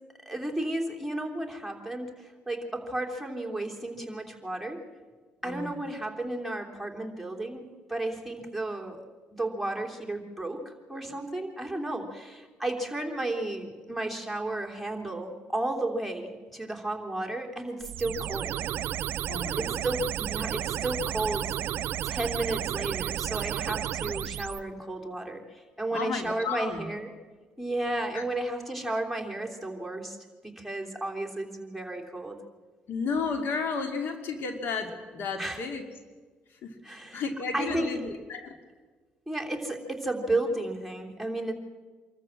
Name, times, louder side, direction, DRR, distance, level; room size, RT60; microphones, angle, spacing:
voice 1, 0.2-4.8 5.4-9.0 9.3-18.5 19.6-21.5 22.0-27.1 27.6-30.2 30.4-32.4 35.4-35.7 36.8-38.0 39.3-41.5, right 2 dB, ahead, 2 dB, 3.2 m, -33 dB
voice 2, 5.4-5.8 19.3-19.8 25.9-26.9 28.1-28.2 32.9-35.8 36.6-38.6, left 4 dB, 70° left, 6 dB, 2.4 m, -33 dB
sound 1, 17.8-24.6, right 11 dB, 70° right, 0.6 m, -32 dB
25.5 x 14.0 x 7.6 m, 1.4 s
cardioid pair, 80°, 4 cm